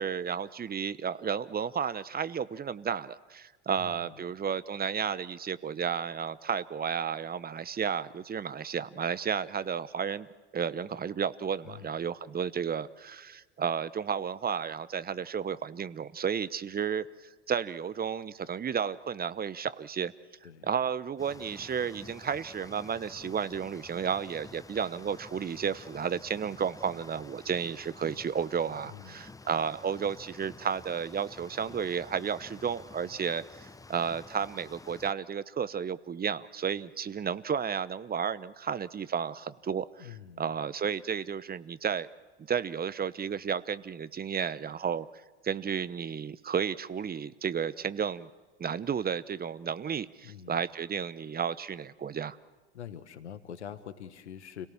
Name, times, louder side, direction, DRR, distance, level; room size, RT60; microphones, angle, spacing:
voice 1, 0.0-10.3 10.5-17.1 17.5-20.1 20.6-40.1 40.4-42.1 42.5-45.1 45.4-48.3 48.6-52.4, right 7 dB, 30° right, 17 dB, 0.9 m, -32 dB
voice 2, 3.7-4.3 11.6-12.0 20.4-20.7 28.8-29.2 40.0-40.5 50.2-50.6 52.7-54.7, left 9 dB, 85° left, 13 dB, 1.4 m, -45 dB
sound 1, 21.2-35.1, left 3 dB, 10° left, 0.8 m, -50 dB
30.0 x 18.0 x 7.2 m, 1.3 s
hypercardioid pair, 70°, 33 cm